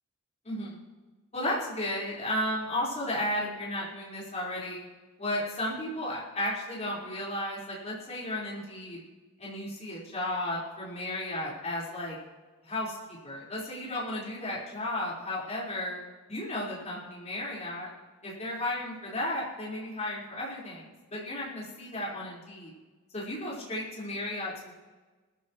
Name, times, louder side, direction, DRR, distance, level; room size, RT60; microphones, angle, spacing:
voice 1, 0.4-0.9 1.3-4.8 5.2-9.0 9.4-12.2 12.6-16.0 16.3-17.9 18.2-22.7 23.1-24.7, left 1 dB, 30° left, -7 dB, 4.9 m, -34 dB
20.5 x 14.0 x 3.2 m, 1.3 s
head